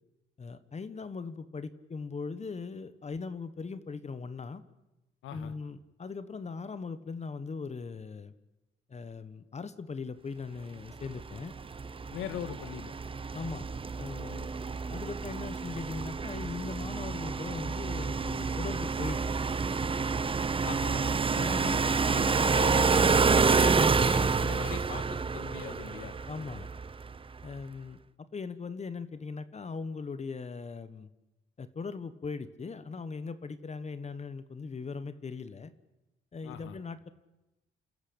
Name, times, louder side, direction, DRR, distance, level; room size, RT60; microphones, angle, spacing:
voice 1, 0.4-4.6 5.3-8.3 8.9-11.5 13.3-13.7 14.0-14.5 14.9-19.2 21.3-21.7 26.3-26.7 27.4-31.1 31.6-35.7 36.3-37.1, left 4 dB, 35° left, 13 dB, 1.4 m, -39 dB
sound 1, 11.0-27.2, right 4 dB, 25° right, 0.8 m, -28 dB
voice 2, 12.1-12.9 20.6-21.0 21.6-26.1 36.4-36.8, left 9 dB, 85° left, 10 dB, 1.8 m, -40 dB
29.5 x 13.5 x 8.8 m, 0.97 s
cardioid pair, 90°, 20 cm